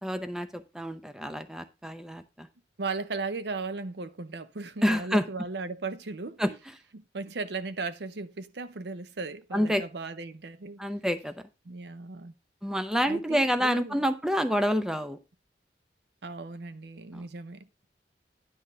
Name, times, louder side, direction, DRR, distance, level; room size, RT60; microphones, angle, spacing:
voice 1, 0.0-2.5 4.8-5.2 6.4-6.5 9.5-9.8 10.8-11.3 12.6-15.2 17.1-17.3, equal, 5° right, 0.6 m, -28 dB
voice 2, 2.8-6.6 6.9-10.8 11.7-12.3 13.1-14.0 16.2-17.7, right 3 dB, 75° right, 0.7 m, -36 dB
10.5 x 3.6 x 6.6 m
head